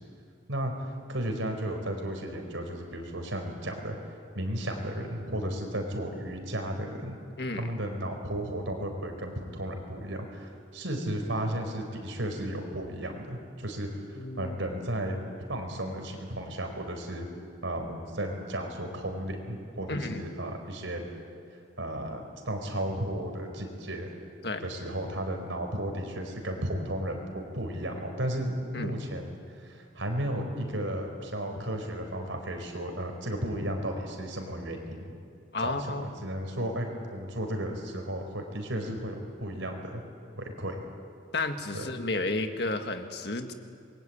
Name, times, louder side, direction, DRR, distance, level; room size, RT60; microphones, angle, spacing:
voice 1, 1.1-7.2 7.5-17.3 17.6-21.1 21.8-24.1 24.6-29.4 29.6-35.1 35.6-40.0 40.3-40.8 41.7-41.9, right 1 dB, 90° right, 4 dB, 4.7 m, -34 dB
voice 2, 14.2-14.6 19.9-20.2 24.4-24.7 28.7-28.9 35.5-36.1 41.3-43.5, left 2 dB, 60° left, 6 dB, 1.9 m, -32 dB
27.5 x 22.0 x 8.8 m, 2.3 s
head